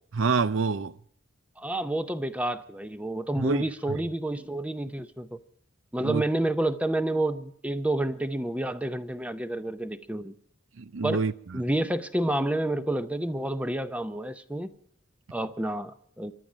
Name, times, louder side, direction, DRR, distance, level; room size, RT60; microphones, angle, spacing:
voice 1, 0.1-0.9 3.4-3.6 6.0-6.2 10.8-11.6, right 4 dB, 70° right, 0.6 m, -27 dB
voice 2, 1.6-5.4 5.9-10.3 11.0-11.2 11.5-14.7 15.3-16.3, right 1 dB, 5° right, 0.6 m, -29 dB
24.5 x 11.0 x 5.1 m
head